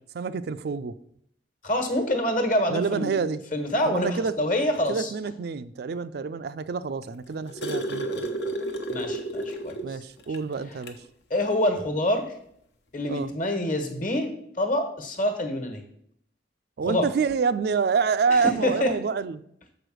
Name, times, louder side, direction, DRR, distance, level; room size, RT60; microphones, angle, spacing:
voice 1, 0.1-0.9 2.7-3.4 3.9-4.3 4.9-8.3 9.8-11.0 13.1-13.3 16.8-19.4, right 5 dB, 60° right, 12 dB, 0.4 m, -27 dB
voice 2, 1.6-3.2 3.5-5.1 8.9-10.0 11.3-12.2 12.9-15.8 16.8-17.1 18.3-18.9, left 1 dB, 45° left, 6 dB, 1.3 m, -26 dB
sound 1, 7.0-10.0 10.3-10.4 10.8-11.1 12.2-12.3, right 1 dB, 70° left, 1.0 m, -31 dB
6.9 x 4.9 x 6.2 m, 0.70 s
head